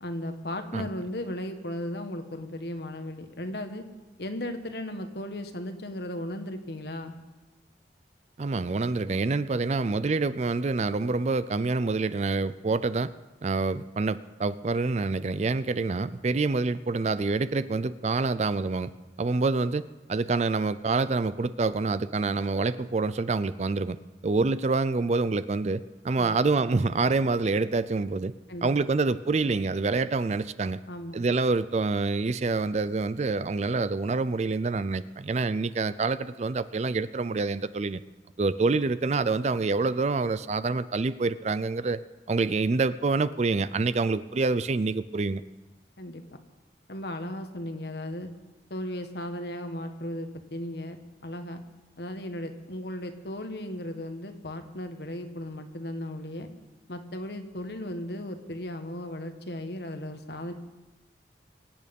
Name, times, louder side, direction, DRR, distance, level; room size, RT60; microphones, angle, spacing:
voice 1, 0.0-3.9 4.2-7.2 26.2-26.4 28.5-28.9 30.9-31.2 46.0-46.4 46.9-48.3 48.7-51.0 51.2-51.6 52.0-56.5 56.9-60.5, left 1 dB, 65° left, 7 dB, 1.4 m, -36 dB
voice 2, 8.4-13.1 13.4-18.9 19.2-19.8 20.1-24.0 24.2-28.3 28.6-30.8 31.1-38.0 38.4-42.0 42.3-45.4, right 3 dB, 40° right, 15 dB, 0.4 m, -26 dB
24.0 x 8.8 x 5.3 m, 1.2 s
head